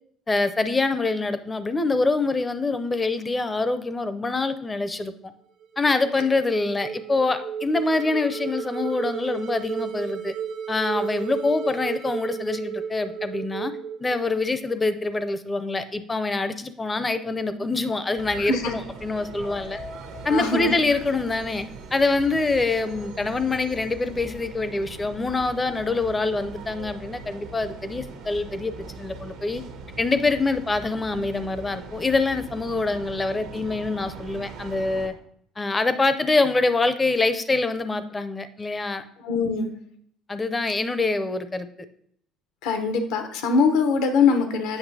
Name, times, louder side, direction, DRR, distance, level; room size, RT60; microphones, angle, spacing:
voice 1, 0.3-5.1 5.8-10.3 10.7-13.7 14.0-19.8 20.2-21.6 21.9-29.6 30.0-35.1 35.6-39.0 40.3-41.7, left 3 dB, 20° left, 12 dB, 0.5 m, -25 dB
sound 1, 5.6-14.8, right 7 dB, 65° right, 0.7 m, -33 dB
sound 2, 18.2-35.1, right 3 dB, 85° right, 1.1 m, -41 dB
voice 2, 18.4-18.7 20.3-20.7 39.2-39.7 42.6-44.8, left 5 dB, 80° left, 7 dB, 0.8 m, -22 dB
7.9 x 5.6 x 2.7 m, 0.67 s
supercardioid pair, 95°, 0 cm